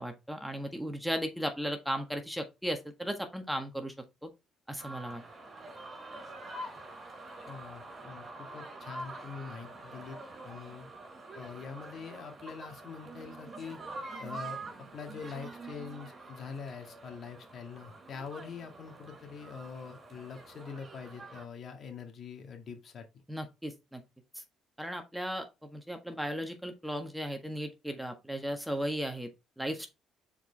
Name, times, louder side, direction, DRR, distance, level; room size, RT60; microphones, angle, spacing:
voice 1, 0.0-3.9 4.2-4.3 4.7-5.2 23.3-24.0 24.8-29.3 29.6-29.9, equal, 5° right, 1.5 m, -36 dB
sound 1, 4.8-21.5, right 2 dB, 40° right, 4.4 m, -46 dB
voice 2, 7.4-10.2 10.4-10.9 11.4-13.8 14.2-14.6 14.9-23.1, left 5 dB, 55° left, 1.9 m, -44 dB
6.6 x 4.8 x 3.3 m
supercardioid pair, 65°, 0 cm